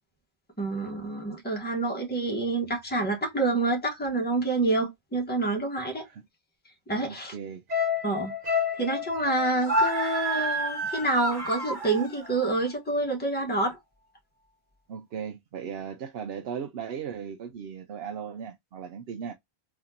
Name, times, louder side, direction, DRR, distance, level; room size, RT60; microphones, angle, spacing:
voice 1, 0.6-6.1 6.9-7.3 8.0-8.3 8.8-13.8, right 2 dB, 10° left, 1.2 m, -27 dB
voice 2, 7.1-7.6 14.9-19.3, right 7 dB, 75° right, 0.8 m, -37 dB
sound 1, 7.7-12.1 12.4-12.5, left 4 dB, 45° right, 1.2 m, -30 dB
Screaming, 9.5-12.3, right 3 dB, 25° right, 2.6 m, -31 dB
4.2 x 2.9 x 2.5 m
omnidirectional pair, 1.1 m